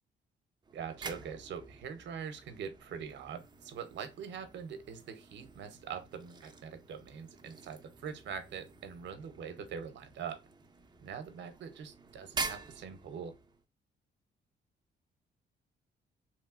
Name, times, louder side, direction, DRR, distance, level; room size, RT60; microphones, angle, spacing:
sound 1, 0.6-13.6, right 4 dB, 20° right, 0.4 m, -47 dB
voice 1, 0.7-10.4 11.0-13.3, right 7 dB, 65° right, 0.7 m, -43 dB
3.0 x 2.6 x 2.4 m
cardioid pair, 90°, 20 cm